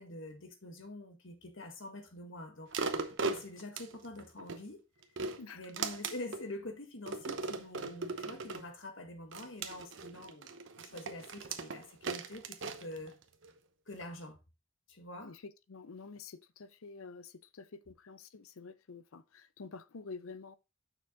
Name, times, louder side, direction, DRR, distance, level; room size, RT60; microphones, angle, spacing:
voice 1, 0.0-2.7 3.2-4.8 5.5-13.1 13.9-14.4 14.9-15.4, left 1 dB, 70° left, 1.7 m, -46 dB
sound 1, 2.7-4.6 5.0-6.5 7.1-8.7 9.3-13.5 14.0-14.1, right 4 dB, 65° right, 0.9 m, -38 dB
voice 2, 15.2-20.6, left 4 dB, 90° left, 0.6 m, -49 dB
6.8 x 6.0 x 3.8 m
head